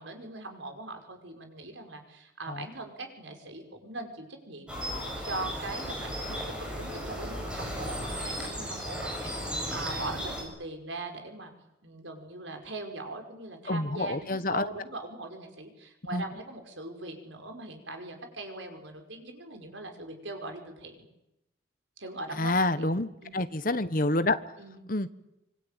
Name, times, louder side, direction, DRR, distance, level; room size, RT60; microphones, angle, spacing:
voice 1, 0.0-11.5 11.8-21.1 22.0-22.9 23.2-23.5 24.6-24.9, right 2 dB, 75° right, 4 dB, 5.4 m, -41 dB
sound 1, 4.7-10.4, equal, 5° right, 7.6 m, -35 dB
voice 2, 13.7-14.7 16.1-16.2 22.4-24.4 24.9-25.1, left 2 dB, 45° left, 12 dB, 1.3 m, -28 dB
25.5 x 24.0 x 9.0 m, 0.91 s
head